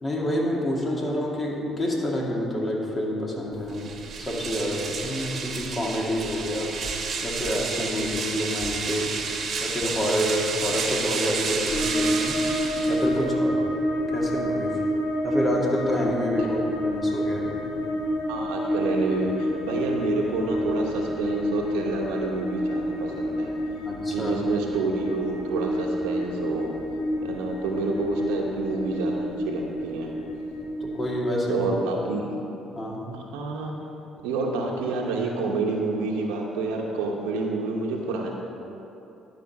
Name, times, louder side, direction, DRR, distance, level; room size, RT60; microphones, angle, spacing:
voice 1, 0.0-3.9 4.2-6.7 7.2-9.2 9.6-12.4 12.9-13.6 14.1-14.8 15.2-17.6 23.8-24.4 30.8-31.7 32.7-33.1, equal, 30° left, -2 dB, 2.1 m, -28 dB
sound 1, 3.7-13.3, right 5 dB, 50° right, 1.2 m, -31 dB
sound 2, 11.7-31.1, equal, 70° left, 1.9 m, -28 dB
voice 2, 18.3-23.5 24.1-26.7 27.2-30.1 31.5-32.4 33.1-33.7 34.2-38.3, right 3 dB, 85° right, -1 dB, 0.9 m, -28 dB
11.5 x 4.9 x 5.9 m, 2.9 s
supercardioid pair, 70°, 0 cm